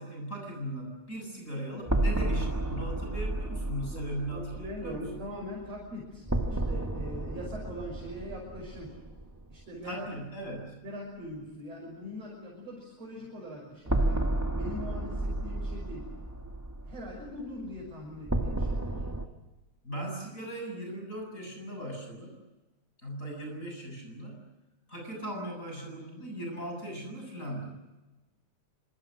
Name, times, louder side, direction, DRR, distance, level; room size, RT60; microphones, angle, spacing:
voice 1, 0.0-5.2 9.8-10.8 19.8-22.4 23.0-24.5 24.9-27.8, right 1 dB, 25° left, 2 dB, 8.3 m, -38 dB
sound 1, 1.9-9.6 9.9-10.0 13.9-19.3, right 1 dB, 10° right, 1.5 m, -32 dB
voice 2, 4.3-6.3 6.5-8.9 9.5-10.1 10.4-10.5 10.8-14.2 14.5-16.1 16.8-19.0, equal, 60° right, -1 dB, 7.4 m, -41 dB
27.5 x 26.5 x 6.5 m, 1.1 s
omnidirectional pair, 3.3 m